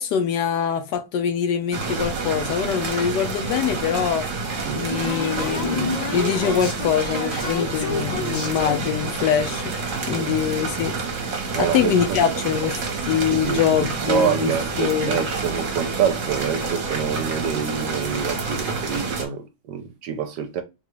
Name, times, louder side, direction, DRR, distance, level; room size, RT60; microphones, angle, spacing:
voice 1, 0.0-4.3 4.7-9.7 10.1-10.9 11.6-12.8 13.0-14.5 14.8-15.2, left 8 dB, 75° left, 1.1 m, -23 dB
sound 1, 1.7-19.3, right 4 dB, 50° right, 1.2 m, -28 dB
sound 2, 4.5-9.4 9.8-11.6 11.9-12.7 12.9-14.3 14.6-14.7 14.9-15.2 15.5-15.6 16.4-16.5 16.8-17.0 17.5-17.8, left 1 dB, 30° left, 0.7 m, -32 dB
voice 2, 10.0-10.3 11.5-12.2 12.5-12.6 13.3-20.6, right 7 dB, 75° right, 1.1 m, -26 dB
3.8 x 2.3 x 3.0 m
omnidirectional pair, 2.0 m